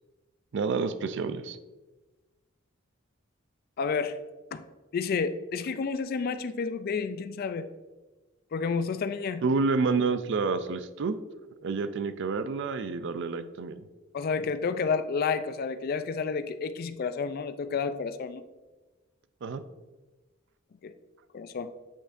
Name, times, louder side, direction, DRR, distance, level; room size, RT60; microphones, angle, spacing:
voice 1, 0.5-1.6 9.4-11.2 11.6-13.8 19.4-19.6, right 4 dB, 60° right, 11 dB, 0.4 m, -29 dB
voice 2, 3.8-4.2 4.5-4.6 4.9-7.7 8.5-9.4 14.1-18.4 20.8-20.9 21.3-21.7, left 5 dB, 45° left, 11 dB, 0.3 m, -30 dB
8.5 x 5.1 x 2.5 m, 1.2 s
head